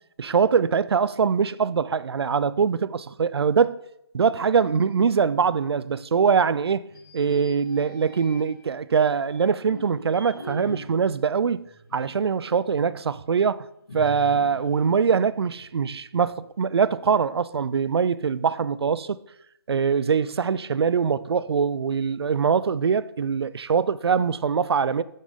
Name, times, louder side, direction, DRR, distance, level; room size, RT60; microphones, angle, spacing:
voice 1, 0.2-3.8 4.1-6.9 7.1-13.7 13.9-19.2 19.7-25.0, right 6 dB, 75° right, 0.4 m, -23 dB
sound 1, 6.9-8.7 9.3-12.3 12.7-12.8 13.9-15.9, equal, 55° left, 2.6 m, -42 dB
8.7 x 6.4 x 3.6 m
hypercardioid pair, 175°, 13 cm